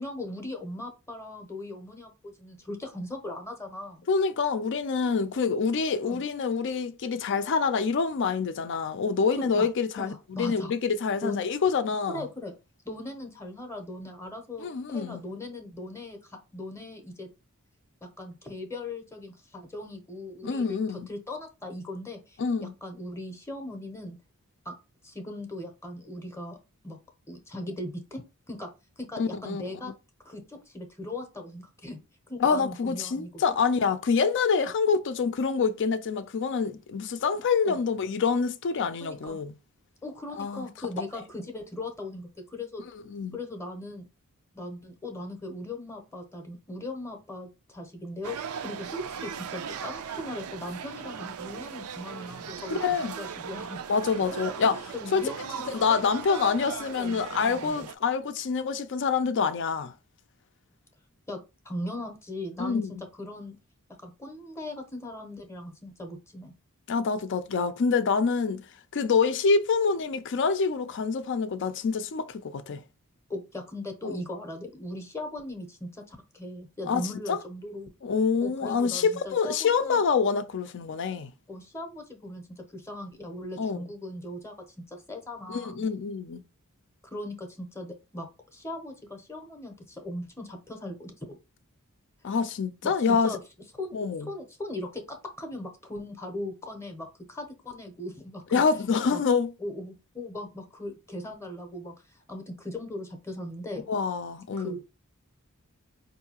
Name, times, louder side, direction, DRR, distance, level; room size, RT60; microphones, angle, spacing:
voice 1, 0.0-4.0 6.0-6.2 9.4-9.7 10.0-10.7 11.2-11.4 12.1-12.5 12.8-17.3 18.0-24.2 24.6-24.7 25.0-26.6 26.8-27.0 27.3-28.7 29.0-29.9 30.2-32.0 32.3-33.4 37.6-37.8 39.0-39.4 40.0-42.9 43.3-44.1 44.5-53.8 54.3-57.9 61.3-62.9 63.2-63.6 64.0-66.5 73.3-77.9 78.4-80.0 81.5-84.5 84.9-85.8 87.1-91.4 92.8-93.4 93.8-98.4 99.1-99.2 99.6-103.9 104.6-104.8, left 1 dB, 10° left, 0.7 m, -39 dB
voice 2, 4.1-12.3 14.6-15.2 20.4-21.1 22.4-22.7 29.2-29.6 32.4-39.5 40.4-40.6 43.1-43.4 52.8-53.1 53.9-54.8 55.1-55.2 55.7-59.9 62.6-63.0 66.9-68.6 68.9-72.8 74.0-74.2 76.9-77.0 77.3-77.4 78.0-81.3 83.6-83.8 85.5-86.4 92.2-93.3 93.9-94.3 98.5-99.5 103.9-104.8, left 5 dB, 55° left, 0.4 m, -26 dB
sound 1, 48.2-57.9, right 7 dB, 70° right, 0.4 m, -38 dB
4.6 x 2.7 x 2.9 m
head